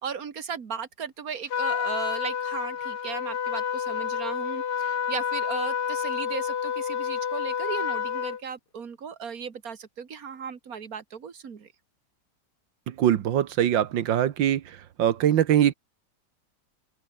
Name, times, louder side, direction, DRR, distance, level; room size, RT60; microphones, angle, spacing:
voice 1, 0.0-11.7, right 7 dB, 50° right, 2.3 m, -36 dB
Trumpet, 1.5-8.4, left 8 dB, 60° left, 1.9 m, -29 dB
voice 2, 13.0-14.6 15.0-15.7, right 10 dB, 80° right, 1.8 m, -22 dB
open air
omnidirectional pair, 2.0 m